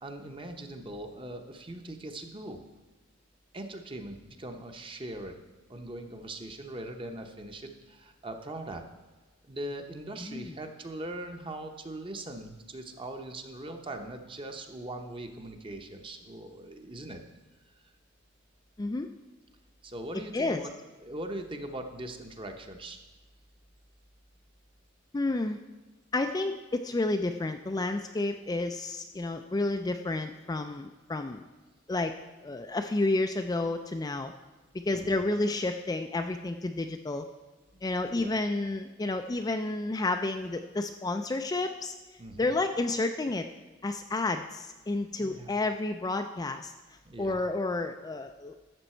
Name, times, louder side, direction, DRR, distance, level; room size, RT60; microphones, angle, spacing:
voice 1, 0.0-2.6 3.5-5.4 5.7-8.8 9.5-17.2 19.8-20.7 21.0-23.0 34.9-35.2 37.7-37.9 38.1-38.3 42.2-42.5 45.2-45.5 47.0-47.4, right 1 dB, 25° right, 5 dB, 0.9 m, -40 dB
voice 2, 10.2-10.5 18.8-19.1 20.3-20.6 25.1-25.6 26.1-31.5 31.9-32.1 32.4-34.3 34.9-37.3 37.8-41.9 42.4-43.5 43.8-46.7 47.2-48.7, left 2 dB, 20° left, 6 dB, 0.4 m, -30 dB
12.0 x 7.3 x 4.4 m, 1.2 s
head